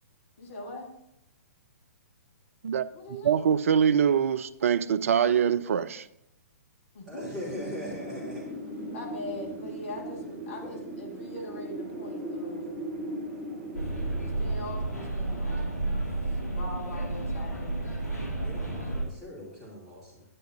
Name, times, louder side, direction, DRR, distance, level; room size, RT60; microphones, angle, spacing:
voice 1, 0.4-0.9 2.9-3.4 6.9-7.6 8.9-12.7 14.0-18.2, left 1 dB, 50° left, 1 dB, 1.9 m, -42 dB
voice 2, 3.2-6.0, right 8 dB, 55° right, 17 dB, 0.4 m, -24 dB
voice 3, 7.1-8.5 10.2-10.3 10.6-10.8 18.4-20.2, equal, 5° right, -11 dB, 2.9 m, -40 dB
Wind, 7.4-16.1, right 1 dB, 20° right, 1.4 m, -39 dB
sound 1, 13.7-19.0, right 2 dB, 75° left, 2.2 m, -31 dB
10.0 x 9.2 x 2.7 m, 0.82 s
figure-of-eight pair, 120°, 9 cm